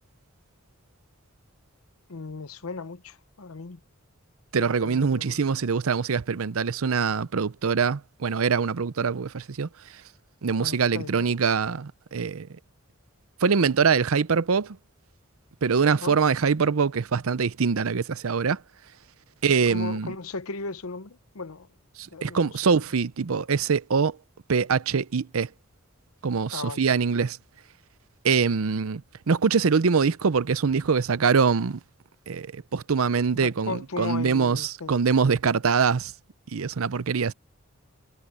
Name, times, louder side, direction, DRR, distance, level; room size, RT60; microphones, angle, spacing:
voice 1, 2.1-3.8 4.5-5.5 10.6-11.3 16.0-16.2 19.4-21.7 22.1-22.8 26.5-26.8 33.3-35.0, left 4 dB, 90° left, 0.9 m, -37 dB
voice 2, 4.5-9.7 10.4-12.5 13.4-14.8 15.6-18.6 19.4-20.1 22.0-24.2 24.5-25.5 26.2-27.4 28.2-31.8 32.3-36.1 36.5-37.3, right 5 dB, 80° right, 0.6 m, -24 dB
head